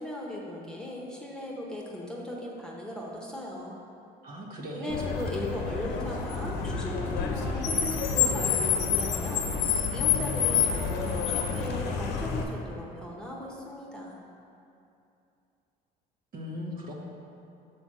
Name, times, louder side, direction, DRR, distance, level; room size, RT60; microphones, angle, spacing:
voice 1, 0.0-3.7 4.7-14.2, left 1 dB, 5° left, -3 dB, 1.1 m, -37 dB
voice 2, 4.2-5.0 16.3-16.9, left 1 dB, 55° right, -2 dB, 1.3 m, -38 dB
Car, 4.9-12.4, left 7 dB, 85° left, 0.8 m, -28 dB
6.2 x 4.5 x 6.3 m, 2.6 s
cardioid pair, 110°, 17 cm